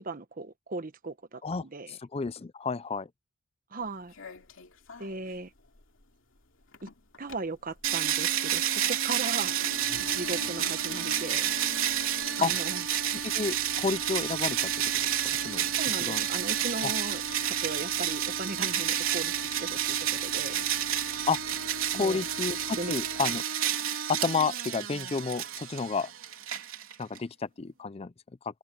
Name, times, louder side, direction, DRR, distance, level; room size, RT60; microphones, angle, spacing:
voice 1, 0.0-2.0 3.7-4.1 5.0-5.5 6.8-6.9 7.2-9.8 10.1-11.6 12.4-12.8 15.8-20.7 21.9-22.2 22.7-22.9, right 3 dB, 40° right, 1.2 m, -37 dB
voice 2, 1.9-3.1 12.4-12.5 13.2-14.7 15.4-15.6 16.1-16.2 16.8-16.9 21.3-21.4 21.9-23.4 24.1-26.1 27.0-28.1, left 4 dB, 30° left, 0.4 m, -30 dB
sound 1, 3.8-23.4, left 3 dB, 70° left, 2.7 m, -48 dB
sound 2, 7.8-27.2, right 10 dB, 80° right, 3.6 m, -30 dB
open air
head